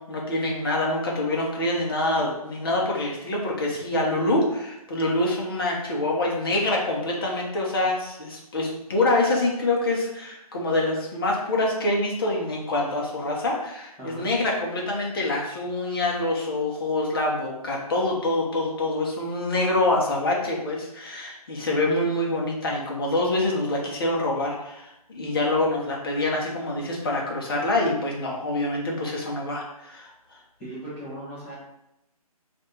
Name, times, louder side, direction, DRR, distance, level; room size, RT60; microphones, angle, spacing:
voice 1, 0.0-30.1, left 2 dB, 35° left, -2 dB, 1.0 m, -25 dB
voice 2, 14.0-14.3 30.6-31.6, right 1 dB, 5° left, -8 dB, 0.9 m, -37 dB
3.2 x 2.6 x 4.2 m, 0.85 s
hypercardioid pair, 165°, 20 cm